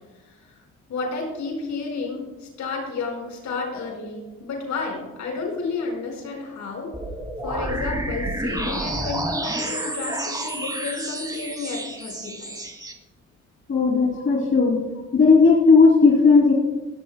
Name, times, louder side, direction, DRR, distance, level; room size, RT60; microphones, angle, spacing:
voice 1, 0.9-6.9 7.4-12.6 14.1-14.5, left 4 dB, 70° left, 0 dB, 4.8 m, -31 dB
sound 1, 6.9-12.9, right 1 dB, 15° right, 2.4 m, -30 dB
voice 2, 13.7-14.8 15.1-16.5, left 4 dB, 45° left, -3 dB, 2.9 m, -15 dB
16.5 x 16.5 x 2.2 m, 1.1 s
supercardioid pair, 65°, 30 cm